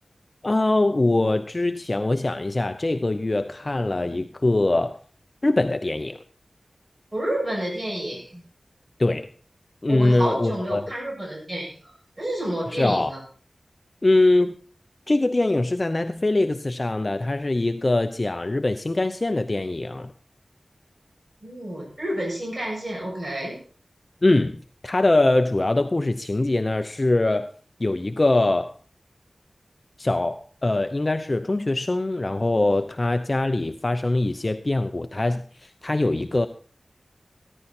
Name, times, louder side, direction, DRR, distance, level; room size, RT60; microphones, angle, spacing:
voice 1, 0.4-5.0 5.4-6.2 9.0-9.3 9.8-10.8 12.7-13.1 14.0-14.5 15.1-20.1 24.2-27.5 27.8-28.7 30.0-36.5, left 2 dB, 40° left, 8 dB, 0.8 m, -22 dB
voice 2, 7.1-8.4 9.9-11.8 12.2-13.2 21.4-23.6, right 1 dB, 30° right, -3 dB, 7.8 m, -29 dB
15.0 x 11.0 x 4.3 m, 0.41 s
wide cardioid pair, 50°, 0 cm